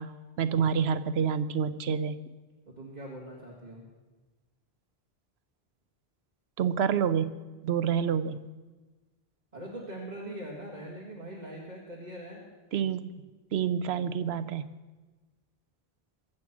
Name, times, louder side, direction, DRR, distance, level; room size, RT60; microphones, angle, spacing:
voice 1, 0.0-2.2 6.6-7.3 7.6-8.4 12.7-13.1 13.5-14.7, right 7 dB, 90° right, 13 dB, 1.0 m, -28 dB
voice 2, 2.7-3.8 9.5-12.4, right 1 dB, 45° right, -4 dB, 2.2 m, -42 dB
22.5 x 8.1 x 6.0 m, 1.2 s
omnidirectional pair, 1.0 m